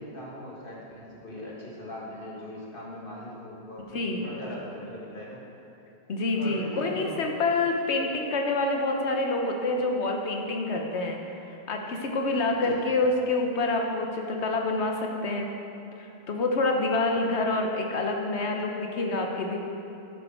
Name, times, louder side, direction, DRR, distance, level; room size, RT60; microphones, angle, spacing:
voice 1, 0.0-3.9 4.2-5.4 6.3-7.2 12.3-12.9 17.1-17.2, left 1 dB, 55° left, -4 dB, 2.0 m, -40 dB
voice 2, 3.9-4.3 6.1-15.5 16.0-19.6, left 2 dB, 85° left, 2 dB, 1.3 m, -27 dB
11.5 x 7.2 x 4.4 m, 2.9 s
omnidirectional pair, 1.1 m